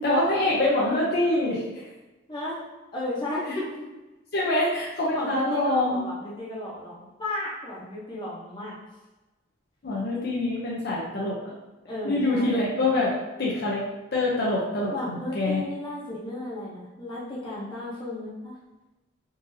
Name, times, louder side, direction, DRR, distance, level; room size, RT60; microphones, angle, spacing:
voice 1, 0.0-1.9 4.3-6.0 9.8-11.4 12.0-13.8 14.1-15.6, left 2 dB, 50° left, -5 dB, 0.6 m, -25 dB
voice 2, 2.3-2.6 2.9-3.9 5.1-8.7 11.9-12.6 14.9-18.5, left 1 dB, 25° left, -7 dB, 0.9 m, -34 dB
3.8 x 2.7 x 2.7 m, 1.1 s
head